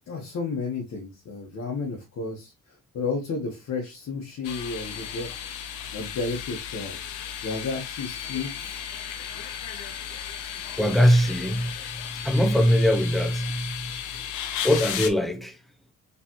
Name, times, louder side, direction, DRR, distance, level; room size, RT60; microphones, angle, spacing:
voice 1, 0.1-2.5 2.9-5.3 5.9-7.0 7.4-8.8, left 4 dB, 60° left, 1.2 m, -32 dB
sound 1, 4.4-15.1, left 9 dB, 80° left, 0.7 m, -35 dB
voice 2, 10.8-13.9 14.6-15.6, equal, ahead, 0.6 m, -22 dB
4.0 x 3.3 x 2.9 m
cardioid pair, 90°, 30 cm